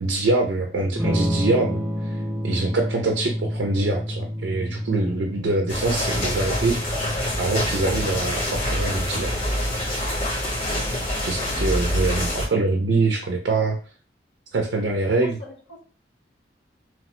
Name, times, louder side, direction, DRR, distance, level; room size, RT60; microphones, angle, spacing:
voice 1, 0.0-7.0 7.4-9.4 11.3-13.8 14.5-15.4, right 3 dB, 85° right, 2 dB, 0.4 m, -24 dB
Electric guitar / Strum, 1.0-10.7, equal, 10° right, 0.4 m, -31 dB
sound 1, 5.7-12.5, left 1 dB, 50° left, 1.1 m, -26 dB
voice 2, 15.2-15.8, left 1 dB, 70° left, -4 dB, 0.8 m, -41 dB
2.9 x 2.1 x 2.9 m, 0.38 s
head